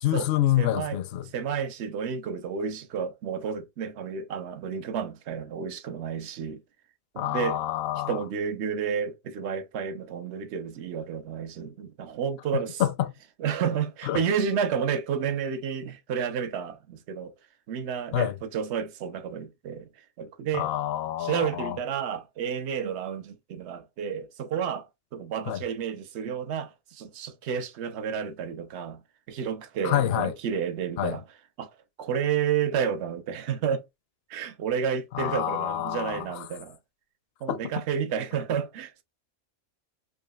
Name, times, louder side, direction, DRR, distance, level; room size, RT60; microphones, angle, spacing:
voice 1, 0.0-1.2 7.2-8.2 12.8-13.1 14.1-14.2 18.1-18.3 20.5-21.8 25.5-25.6 29.8-30.3 31.0-31.2 35.1-36.4 37.5-37.6, left 12 dB, 65° left, 0.7 m, -27 dB
voice 2, 0.6-1.0 1.3-6.6 7.1-7.6 8.1-12.8 13.4-17.3 17.7-19.9 20.2-20.7 21.2-29.0 29.3-31.2 31.6-31.7 32.0-33.8 34.3-36.8 37.4-39.0, right 7 dB, 70° right, 0.9 m, -31 dB
4.9 x 2.9 x 2.2 m
omnidirectional pair, 1.2 m